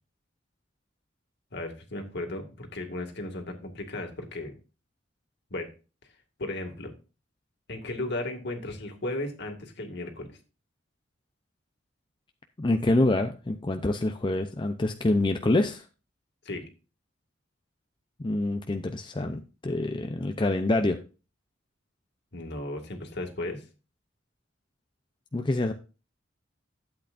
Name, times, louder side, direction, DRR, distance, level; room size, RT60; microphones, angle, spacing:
voice 1, 1.5-4.5 5.5-5.7 6.4-6.9 7.7-10.4 16.4-16.6 22.3-23.6, left 2 dB, 60° left, 4 dB, 2.1 m, -35 dB
voice 2, 12.6-15.8 18.2-21.0 25.3-25.7, left 2 dB, 25° left, 6 dB, 0.5 m, -26 dB
12.0 x 8.1 x 2.5 m, 0.33 s
head